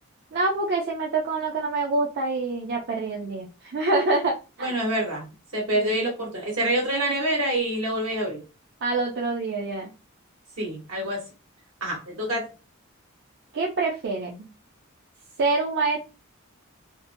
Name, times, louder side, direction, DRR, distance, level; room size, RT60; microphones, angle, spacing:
voice 1, 0.3-4.7 5.8-5.9 8.8-9.9 13.5-14.5 15.4-16.0, right 3 dB, 55° right, -1 dB, 0.5 m, -26 dB
voice 2, 4.6-5.3 5.5-8.4 10.6-11.3 11.8-12.5, right 1 dB, 75° right, -1 dB, 1.3 m, -26 dB
2.7 x 2.1 x 2.6 m, 0.31 s
head